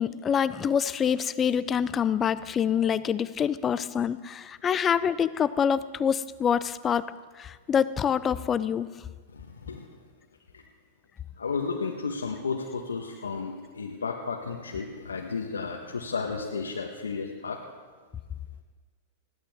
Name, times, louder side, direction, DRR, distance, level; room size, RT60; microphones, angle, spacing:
voice 1, 0.0-7.1 7.4-8.9, left 8 dB, 25° left, 16 dB, 0.6 m, -26 dB
voice 2, 9.3-9.9 10.5-10.6 11.4-17.6, left 5 dB, 80° left, 0 dB, 1.3 m, -33 dB
20.0 x 15.5 x 3.6 m, 1.4 s
figure-of-eight pair, 100°, 0 cm